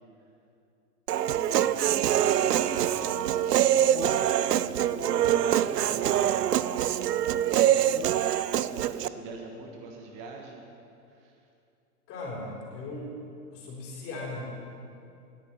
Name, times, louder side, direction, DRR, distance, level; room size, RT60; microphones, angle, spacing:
voice 1, 1.1-1.8 2.1-4.0 4.6-6.7 7.3-7.9 8.7-10.6 11.1-11.3, right 3 dB, 30° right, 1 dB, 1.4 m, -44 dB
Human voice, 1.1-9.1, right 10 dB, 90° right, 0.6 m, -24 dB
voice 2, 12.1-13.2 13.5-14.4, left 2 dB, 30° left, -3 dB, 4.0 m, -38 dB
19.0 x 10.0 x 4.6 m, 2.6 s
hypercardioid pair, 135°, 46 cm